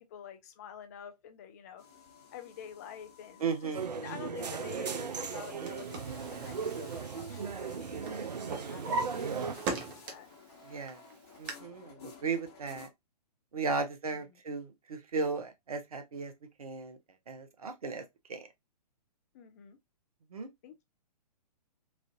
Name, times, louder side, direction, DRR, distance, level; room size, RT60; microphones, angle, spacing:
voice 1, 0.1-1.8 2.3-3.7 4.0-10.3 14.1-14.4 19.3-19.8 20.6-20.8, left 8 dB, 25° left, 0.4 m, -49 dB
sound 1, 1.8-12.9, left 4 dB, 40° left, 1.2 m, -53 dB
voice 2, 3.4-3.9 10.6-11.0 11.4-12.9 13.5-16.3 16.6-17.0 17.3-18.0 18.3-18.5 20.3-20.5, right 4 dB, 60° right, 0.8 m, -36 dB
sound 2, 3.7-9.6, right 6 dB, 80° right, 0.4 m, -37 dB
Drawer open or close, 5.3-7.8 8.1-10.4 10.8-11.5, right 3 dB, 30° right, 0.7 m, -39 dB
3.1 x 2.5 x 2.4 m
figure-of-eight pair, 120°, 21 cm